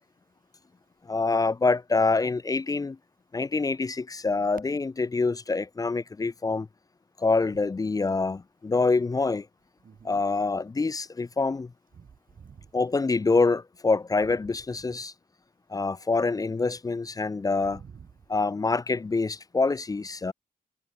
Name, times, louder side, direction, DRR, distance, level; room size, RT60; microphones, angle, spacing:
voice 1, 1.1-3.0 3.3-6.7 7.2-9.5 10.0-11.7 12.7-15.1 15.7-17.8 18.3-20.3, left 3 dB, 25° left, 0.4 m, -26 dB
voice 2, 9.8-10.2 11.9-12.7 14.9-15.0 17.6-18.3, right 6 dB, 60° right, 5.9 m, -49 dB
wide cardioid pair, 105°, 16 cm